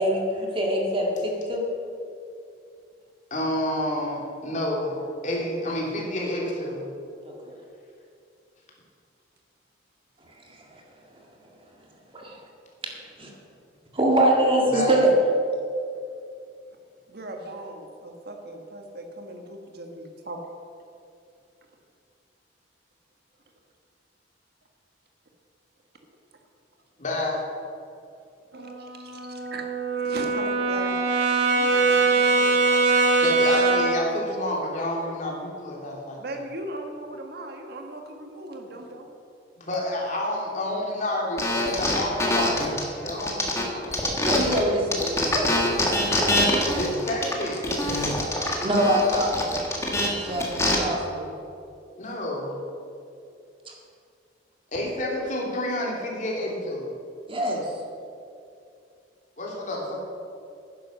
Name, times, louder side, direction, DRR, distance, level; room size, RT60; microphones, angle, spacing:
voice 1, 0.0-1.7 7.2-7.5 12.1-12.4 13.2-13.3 13.9-15.1 44.2-46.8 48.6-49.5 50.1-51.3 57.3-57.7, right 1 dB, 30° right, -1 dB, 1.9 m, -24 dB
voice 2, 3.3-5.0 5.2-6.9 14.7-15.0 27.0-27.4 33.2-36.2 39.6-44.7 46.7-48.3 52.0-52.6 54.7-56.9 59.4-60.0, left 1 dB, 45° left, -2 dB, 3.0 m, -29 dB
voice 3, 17.1-20.4 28.8-29.2 29.5-29.6 30.0-31.1 31.6-32.6 36.2-39.1, right 1 dB, 60° right, 3 dB, 1.6 m, -38 dB
Brass instrument, 28.5-34.1, right 3 dB, 85° right, 1.9 m, -22 dB
sound 1, 41.4-44.6 44.9-50.7, left 1 dB, 15° left, 1.7 m, -25 dB
10.5 x 10.0 x 6.5 m, 2.5 s
head